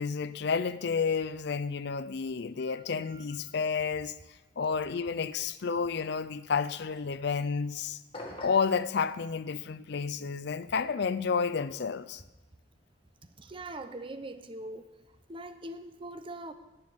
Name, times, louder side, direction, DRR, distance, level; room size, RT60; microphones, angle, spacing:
voice 1, 0.0-4.1 4.6-8.0 8.4-12.2, left 5 dB, 60° left, 0.5 m, -30 dB
sound 1, 8.1-8.8, left 1 dB, 30° left, 1.6 m, -42 dB
voice 2, 13.4-14.9 15.3-16.5, right 1 dB, 25° right, 0.8 m, -42 dB
10.5 x 7.1 x 9.4 m
head